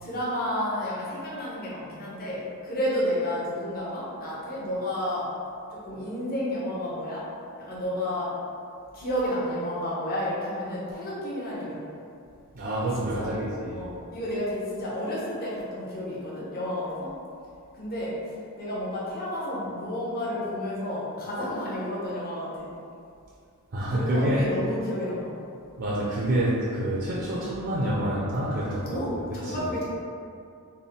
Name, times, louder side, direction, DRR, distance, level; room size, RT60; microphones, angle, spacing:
voice 1, 0.0-5.3 5.7-7.2 7.6-8.3 8.9-11.8 13.0-13.3 13.7-17.1 17.8-18.1 18.6-22.7 23.9-25.3 28.9-29.8, left 1 dB, 45° left, -7 dB, 0.9 m, -31 dB
voice 2, 12.5-13.9 23.7-24.5 25.8-29.0 29.3-29.7, right 1 dB, 50° right, -5 dB, 0.5 m, -27 dB
3.5 x 2.2 x 4.0 m, 2.4 s
head